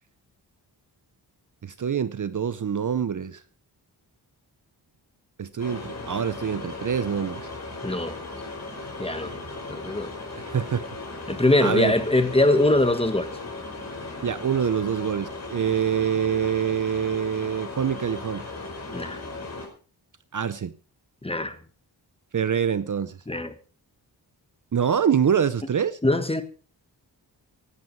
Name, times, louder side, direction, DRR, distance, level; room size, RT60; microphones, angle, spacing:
voice 1, 1.6-3.4 5.4-7.5 10.4-10.9 11.6-11.9 14.2-18.4 20.3-20.7 22.3-23.2 24.7-26.0, right 8 dB, 45° right, 0.7 m, -25 dB
sound 1, 5.6-19.7, left 2 dB, 40° left, 5.2 m, -37 dB
voice 2, 7.8-8.2 9.0-9.3 9.7-10.1 11.3-13.3 18.9-19.2 21.2-21.6 23.3-23.5 26.0-26.4, left 1 dB, 15° left, 1.4 m, -22 dB
17.0 x 11.5 x 4.6 m
wide cardioid pair, 145°, 42 cm